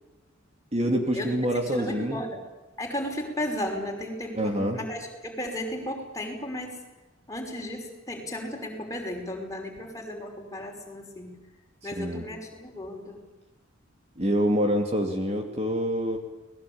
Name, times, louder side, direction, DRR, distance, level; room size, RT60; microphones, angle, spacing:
voice 1, 0.7-2.2 4.4-4.8 11.8-12.2 14.2-16.2, equal, 30° right, 3 dB, 2.6 m, -26 dB
voice 2, 1.7-2.4 2.8-6.8 7.3-11.3 11.8-13.2, left 1 dB, 15° left, 1 dB, 5.6 m, -34 dB
29.5 x 20.5 x 8.8 m, 1.1 s
head